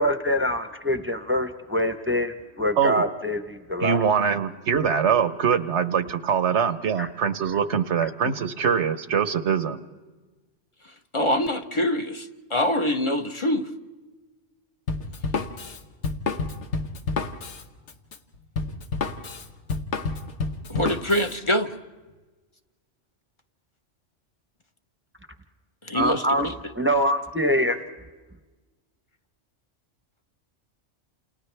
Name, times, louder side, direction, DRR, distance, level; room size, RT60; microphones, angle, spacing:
voice 1, 0.0-4.0 7.0-7.1 25.9-26.5 26.8-27.8, equal, 10° right, 7 dB, 0.9 m, -24 dB
voice 2, 3.8-9.8, right 7 dB, 70° right, 12 dB, 1.2 m, -23 dB
voice 3, 11.1-13.7 20.7-21.7 25.8-26.5, left 1 dB, 25° left, 7 dB, 0.9 m, -25 dB
Drum kit, 14.9-21.3, left 4 dB, 75° left, 1.4 m, -29 dB
29.0 x 28.5 x 3.4 m, 1.2 s
omnidirectional pair, 1.2 m